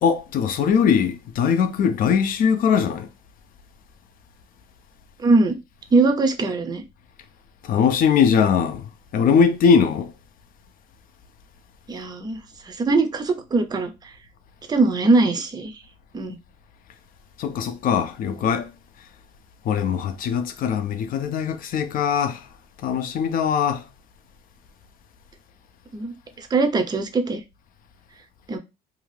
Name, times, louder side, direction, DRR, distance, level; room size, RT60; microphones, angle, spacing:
voice 1, 0.0-3.1 7.6-10.1 17.4-18.7 19.6-22.5 22.8-23.8, left 7 dB, 55° left, 0.5 m, -21 dB
voice 2, 5.2-5.6 5.9-6.8 11.9-12.4 12.7-13.9 14.7-15.7 16.1-16.4 25.9-27.4 28.5-28.6, right 3 dB, 25° right, 0.5 m, -21 dB
2.7 x 2.4 x 3.1 m
cardioid pair, 110°, 17 cm